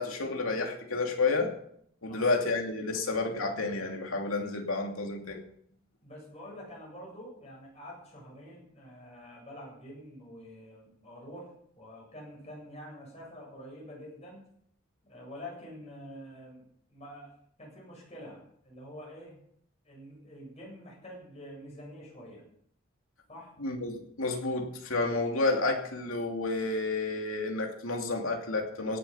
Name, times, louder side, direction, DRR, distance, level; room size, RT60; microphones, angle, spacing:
voice 1, 0.0-1.5 2.0-5.4 23.6-29.0, left 3 dB, 85° left, 2 dB, 2.7 m, -30 dB
voice 2, 6.0-14.5 15.0-16.6 16.9-17.3 17.6-19.4 19.8-22.4 23.3-23.5, equal, 30° left, -3 dB, 8.0 m, -47 dB
17.0 x 9.2 x 5.8 m, 0.68 s
head